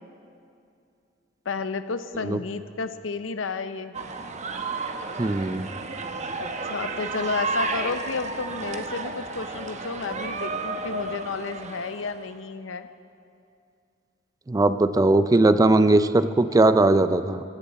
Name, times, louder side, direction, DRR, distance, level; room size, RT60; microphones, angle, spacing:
voice 1, 1.5-4.1 6.4-12.9, left 4 dB, 85° left, 11 dB, 0.7 m, -32 dB
sound 1, 3.9-12.2, right 3 dB, 40° right, 0.9 m, -32 dB
voice 2, 5.2-5.7 14.5-17.4, right 2 dB, 20° right, 12 dB, 0.4 m, -19 dB
17.5 x 15.5 x 4.2 m, 2.5 s
head